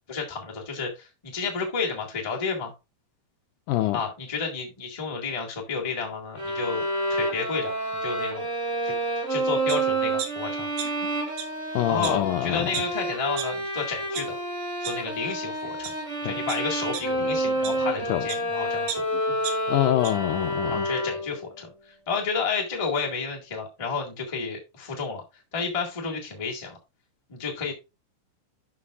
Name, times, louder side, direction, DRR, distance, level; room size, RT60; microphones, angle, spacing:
voice 1, 0.1-2.7 3.9-8.4 8.8-8.9 9.3-10.7 11.8-14.4 14.8-15.9 16.2-19.1 20.7-25.2 25.5-26.8 27.3-27.7, left 5 dB, 25° left, 0.8 m, -31 dB
voice 2, 3.7-4.0 11.7-12.7 16.2-16.3 18.1-18.3 19.7-20.9, left 14 dB, 80° left, 1.8 m, -25 dB
sound 1, 6.4-21.5, right 1 dB, 25° right, 2.5 m, -29 dB
sound 2, 9.7-9.8 10.2-11.1 11.3-11.4 12.0-12.1 12.7-12.8 13.4-13.5 13.9-14.2 14.8-14.9 15.6-15.9 16.5-18.4 18.9-20.1 20.5-20.6, right 8 dB, 85° right, 2.9 m, -34 dB
12.5 x 5.2 x 2.4 m
omnidirectional pair, 3.9 m